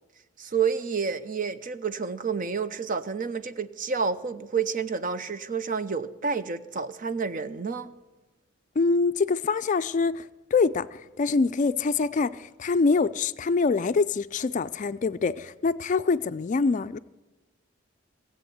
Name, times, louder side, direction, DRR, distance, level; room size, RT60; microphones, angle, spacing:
voice 1, 0.4-7.9, right 5 dB, 40° right, 0.6 m, -29 dB
voice 2, 8.8-17.0, left 4 dB, 40° left, 0.4 m, -25 dB
16.5 x 7.9 x 7.9 m
head